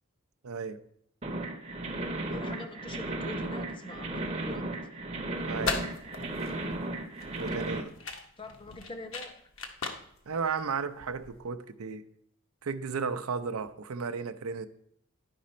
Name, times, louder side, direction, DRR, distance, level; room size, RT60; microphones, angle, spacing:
voice 1, 0.4-0.8 5.5-5.8 7.4-7.9 10.3-12.1 12.6-14.7, right 5 dB, 85° right, 0.5 m, -34 dB
sound 1, 1.2-7.8, right 2 dB, 30° right, 0.7 m, -35 dB
voice 2, 2.3-4.9 8.4-9.4, left 2 dB, 25° left, 0.7 m, -44 dB
sound 2, 5.4-11.4, left 4 dB, 65° left, 1.0 m, -39 dB
11.0 x 5.0 x 4.2 m
head